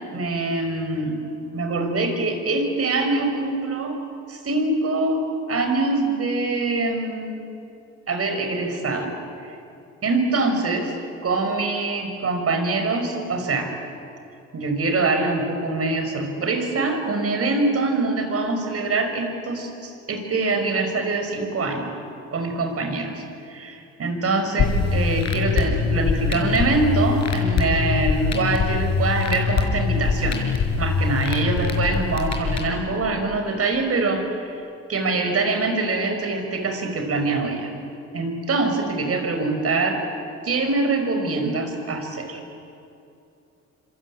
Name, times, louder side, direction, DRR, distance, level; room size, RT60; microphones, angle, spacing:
voice 1, 0.1-1.2 1.5-4.0 4.3-5.2 5.5-7.4 8.1-9.2 9.5-9.6 10.0-10.9 11.2-13.7 14.5-21.9 22.3-23.2 23.5-30.4 30.8-34.6 34.9-37.7 38.1-40.0 40.4-42.4, right 3 dB, 50° right, 5 dB, 5.5 m, -24 dB
sound 1, 24.6-32.6, left 5 dB, 60° left, 5.2 m, -23 dB
26.5 x 26.0 x 8.6 m, 2.7 s
cardioid pair, 90°, 30 cm